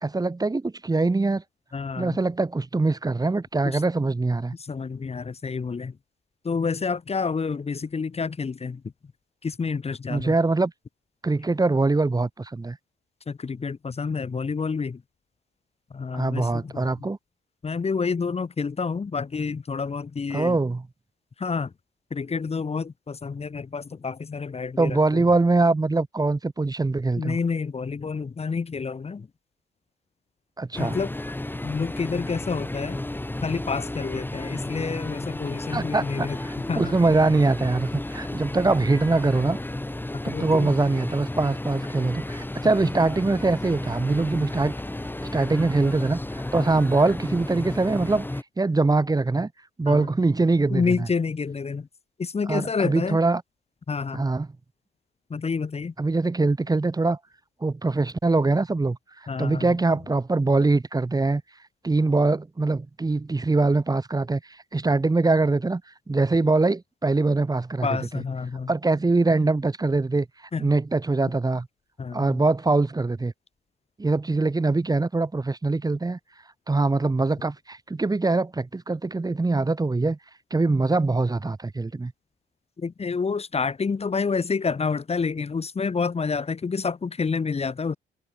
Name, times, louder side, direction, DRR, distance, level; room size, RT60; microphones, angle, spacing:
voice 1, 0.0-1.4 2.0-4.6 10.1-10.7 11.2-12.8 16.1-17.2 20.3-20.8 24.8-27.4 30.6-31.0 35.7-39.6 40.2-44.7 45.3-48.3 48.6-49.5 49.8-50.9 52.5-53.4 54.1-54.5 56.0-57.2 57.6-59.0 59.4-61.4 61.8-64.4 64.7-65.8 66.1-67.9 68.7-70.3 70.6-71.7 72.1-73.3 74.0-76.2 76.7-80.2 80.5-82.1, right 3 dB, 20° right, 1.7 m, -23 dB
voice 2, 1.7-2.2 3.6-3.8 4.6-6.0 6.4-8.8 9.4-10.3 13.3-15.0 15.9-17.1 17.6-20.6 21.4-21.7 22.1-25.3 27.2-29.3 30.8-31.1 31.6-33.0 33.4-36.4 36.7-36.9 40.1-40.7 46.6-46.7 49.8-50.1 50.7-51.9 52.2-53.2 53.9-54.2 55.3-55.9 59.3-59.8 67.8-68.7 70.5-70.7 72.0-72.4 82.8-88.0, left 5 dB, 30° left, 1.6 m, -29 dB
sound 1, 30.7-48.4, left 1 dB, 10° left, 6.1 m, -33 dB
cardioid pair, 90°, 20 cm